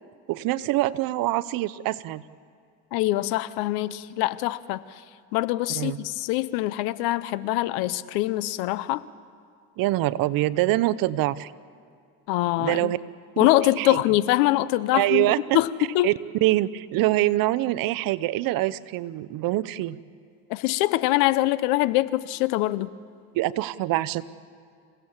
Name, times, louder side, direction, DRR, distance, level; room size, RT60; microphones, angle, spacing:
voice 1, 0.3-2.2 5.7-6.0 9.8-11.5 12.6-13.0 13.4-13.5 13.8-14.0 14.9-15.6 16.0-16.1 16.4-20.0 23.3-24.2, right 16 dB, 65° right, 17 dB, 0.8 m, -24 dB
voice 2, 2.9-4.8 5.3-9.0 12.3-12.9 13.4-15.3 15.5-15.7 15.9-16.1 20.5-22.9, left 17 dB, 90° left, 17 dB, 0.9 m, -23 dB
27.5 x 16.5 x 7.3 m, 2.4 s
cardioid pair, 115°, 36 cm